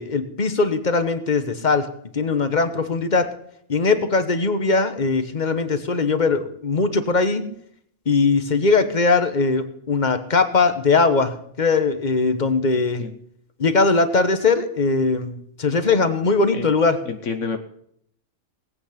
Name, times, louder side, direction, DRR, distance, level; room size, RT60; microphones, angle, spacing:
voice 1, 0.0-1.9 2.1-3.3 3.7-7.4 8.1-13.1 13.6-17.0, left 4 dB, 35° left, 10 dB, 1.2 m, -20 dB
voice 2, 17.1-17.6, left 5 dB, 70° left, 7 dB, 1.3 m, -28 dB
19.5 x 8.7 x 5.8 m, 0.69 s
omnidirectional pair, 1.3 m